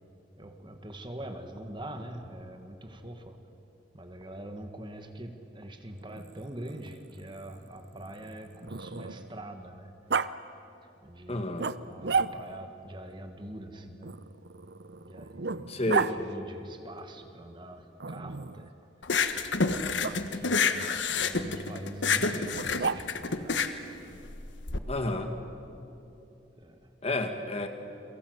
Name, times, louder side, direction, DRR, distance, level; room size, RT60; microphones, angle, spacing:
voice 1, 0.4-3.4 3.9-10.2 10.8-14.2 15.0-18.7 19.1-19.2 19.9-23.7 26.6-26.9, right 1 dB, 25° right, 6 dB, 1.7 m, -44 dB
Growling, 6.0-9.4 10.1-10.3 11.6-12.7 14.0-16.1 18.0-18.7 20.0-20.2 22.5-23.4, right 5 dB, 65° right, 0.7 m, -33 dB
voice 2, 11.3-11.7 15.7-16.1 24.9-25.4 27.0-27.7, left 1 dB, 35° left, 6 dB, 2.0 m, -30 dB
sound 1, 19.0-24.8, left 4 dB, 85° left, 1.4 m, -28 dB
30.0 x 23.0 x 8.0 m, 2.9 s
head